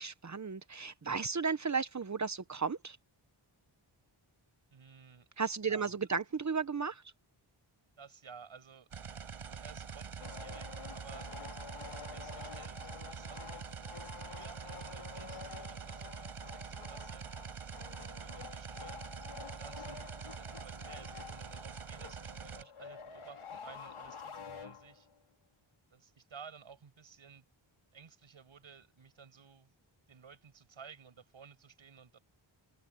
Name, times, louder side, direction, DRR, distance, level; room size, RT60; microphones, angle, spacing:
voice 1, 0.0-3.0 5.4-7.0, right 5 dB, 35° right, 0.8 m, -34 dB
voice 2, 4.7-5.3 5.6-6.0 8.0-8.9 9.4-11.3 11.8-13.7 14.0-17.3 17.9-19.1 19.4-25.1 25.9-27.4 27.9-29.7 30.1-32.2, right 6 dB, 70° right, 6.6 m, -55 dB
sound 1, 8.9-22.6, right 6 dB, 90° right, 6.1 m, -45 dB
sound 2, 10.2-25.2, left 6 dB, 85° left, 4.5 m, -49 dB
wide cardioid pair, 135°, 49 cm